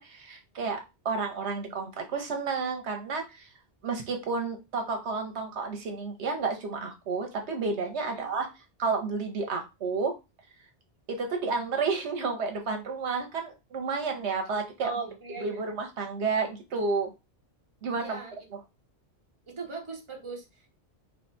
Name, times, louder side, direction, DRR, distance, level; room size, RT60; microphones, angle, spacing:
voice 1, 0.0-3.5 3.8-8.5 8.8-10.1 11.1-14.9 15.4-17.1 17.8-18.2, right 4 dB, 75° right, 3 dB, 1.1 m, -31 dB
voice 2, 14.8-15.7 18.0-18.5 19.5-20.7, right 4 dB, 25° right, 0 dB, 1.1 m, -39 dB
3.1 x 2.9 x 4.2 m, 0.26 s
omnidirectional pair, 1.1 m